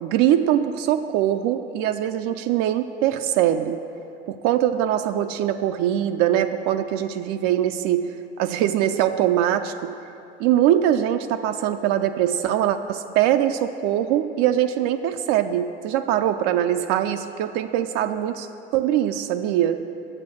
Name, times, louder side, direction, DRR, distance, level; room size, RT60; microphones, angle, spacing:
voice 1, 0.0-3.8 4.3-8.1 8.4-9.9 10.4-18.5 18.7-19.8, right 11 dB, 45° right, 8 dB, 0.5 m, -22 dB
9.8 x 7.5 x 6.2 m, 2.7 s
figure-of-eight pair, 75°, 34 cm